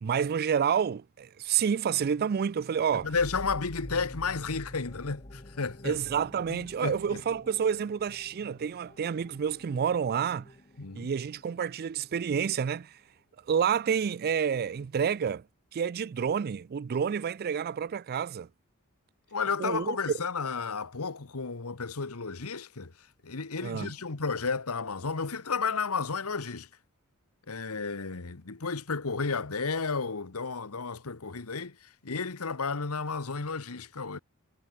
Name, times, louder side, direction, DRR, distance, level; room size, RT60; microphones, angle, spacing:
voice 1, 0.0-3.1 5.8-10.5 11.0-12.9 13.5-15.4 15.7-18.5 19.6-20.0 23.6-23.9, right 7 dB, 45° right, 0.4 m, -29 dB
sound 1, 2.9-12.2, left 1 dB, 30° left, 1.8 m, -47 dB
voice 2, 3.0-6.0 6.5-7.2 10.8-11.1 19.3-22.9 23.2-26.7 27.5-34.2, left 4 dB, 80° left, 1.3 m, -32 dB
head